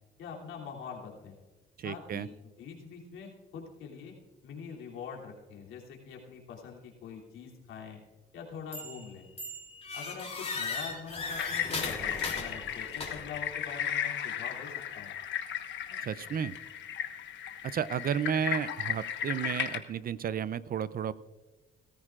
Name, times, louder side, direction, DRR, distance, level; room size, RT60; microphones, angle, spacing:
voice 1, 0.2-1.3 1.8-4.1 4.4-8.0 8.3-9.3 9.9-15.1, left 6 dB, 90° left, -2 dB, 3.0 m, -44 dB
voice 2, 1.8-2.3 16.0-16.6 17.6-21.1, right 8 dB, 45° right, 17 dB, 0.5 m, -32 dB
sound 1, 8.7-9.1 9.4-13.4, left 3 dB, 30° left, 3.0 m, -37 dB
sound 2, 11.3-19.8, left 9 dB, 65° left, 1.2 m, -35 dB
18.0 x 14.0 x 2.5 m, 1.3 s
cardioid pair, 90°, 20 cm